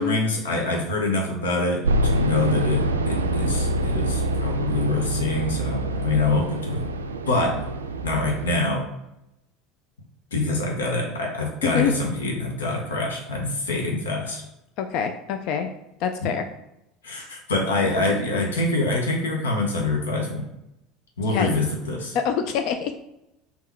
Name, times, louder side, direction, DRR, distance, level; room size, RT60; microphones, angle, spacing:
voice 1, 0.0-6.9 7.3-7.6 8.0-8.9 10.3-14.4 16.2-16.3 17.0-20.4 21.2-22.2, left 2 dB, 80° left, 0 dB, 0.9 m, -25 dB
sound 1, 1.8-8.6, right 1 dB, 85° right, 0.3 m, -25 dB
voice 2, 11.6-11.9 14.8-15.7 16.0-16.5 21.3-21.5 22.1-22.9, left 7 dB, 60° left, 7 dB, 0.4 m, -25 dB
3.6 x 2.9 x 4.3 m, 0.87 s
hypercardioid pair, 75°, 0 cm